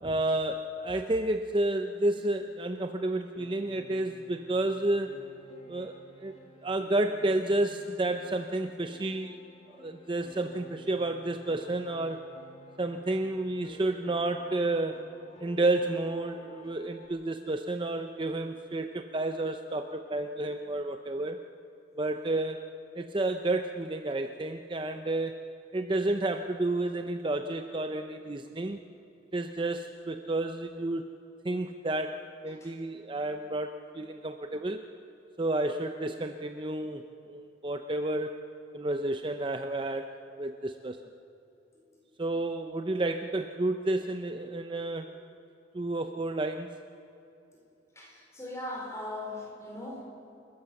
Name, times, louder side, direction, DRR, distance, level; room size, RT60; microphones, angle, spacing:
voice 1, 0.0-5.2 5.7-6.3 6.6-9.4 9.7-12.2 12.8-15.0 15.4-21.4 22.0-25.4 25.7-28.8 29.3-31.1 31.4-34.8 35.4-38.3 38.7-41.0 42.2-45.2 45.7-46.8, right 2 dB, 25° right, 7 dB, 0.6 m, -31 dB
Piano, 3.4-17.1, left 1 dB, 35° left, 2.4 m, -53 dB
voice 2, 47.9-50.0, left 1 dB, 15° left, -2 dB, 4.6 m, -40 dB
29.0 x 13.5 x 7.0 m, 2.8 s
head